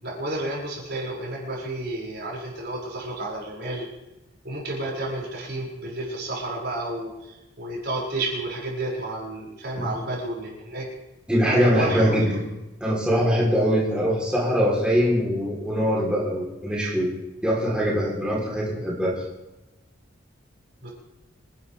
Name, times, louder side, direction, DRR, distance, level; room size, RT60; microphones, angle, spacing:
voice 1, 0.0-3.9 4.4-10.9 11.5-12.1 20.8-20.9, right 1 dB, 55° right, -4 dB, 6.3 m, -31 dB
voice 2, 11.3-12.4 12.8-17.1 17.4-19.2, equal, 5° right, -6 dB, 3.8 m, -22 dB
27.0 x 11.5 x 3.5 m, 1.0 s
head